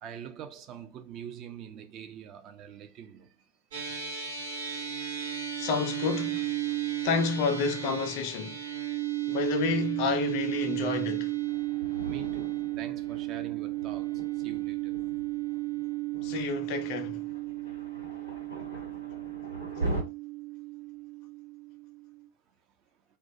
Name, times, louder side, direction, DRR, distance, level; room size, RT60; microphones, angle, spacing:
voice 1, 0.0-3.3 12.0-14.9, right 8 dB, 35° right, 0.3 m, -44 dB
sound 1, 3.7-22.3, right 14 dB, 60° right, 0.9 m, -34 dB
voice 2, 5.6-6.5 7.0-8.7 9.3-11.4 16.2-17.2, left 5 dB, 45° left, 0.4 m, -30 dB
Thunder, 11.4-20.0, right 2 dB, 90° right, 1.0 m, -41 dB
2.2 x 2.2 x 2.6 m
figure-of-eight pair, 90°, 0 cm